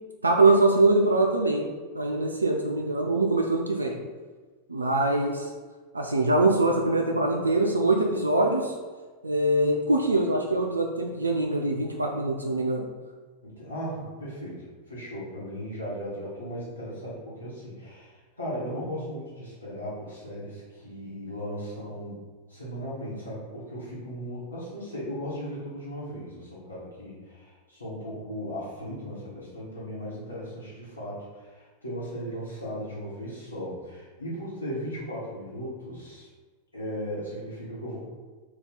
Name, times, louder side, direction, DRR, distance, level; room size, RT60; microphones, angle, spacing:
voice 1, 0.2-1.7 1.9-4.0 4.7-5.5 5.9-8.7 9.2-12.9, right 2 dB, 80° right, 1 dB, 0.3 m, -23 dB
voice 2, 13.4-22.2 22.5-36.3 36.7-38.1, equal, 80° left, -8 dB, 1.0 m, -37 dB
2.7 x 2.3 x 4.0 m, 1.4 s
figure-of-eight pair, 90°, 0 cm